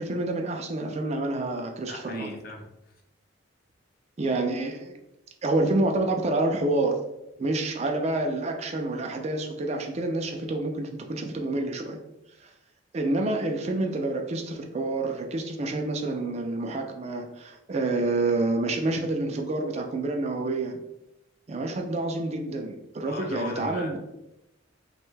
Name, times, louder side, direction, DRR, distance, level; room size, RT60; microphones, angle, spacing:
voice 1, 0.0-2.3 4.2-4.9 5.4-7.0 7.4-12.0 12.4-12.5 12.9-20.8 21.5-24.0, right 2 dB, 30° right, 3 dB, 0.3 m, -28 dB
voice 2, 1.8-3.0 23.1-24.0, left 2 dB, 45° left, 2 dB, 0.5 m, -39 dB
3.1 x 2.2 x 3.2 m, 0.89 s
head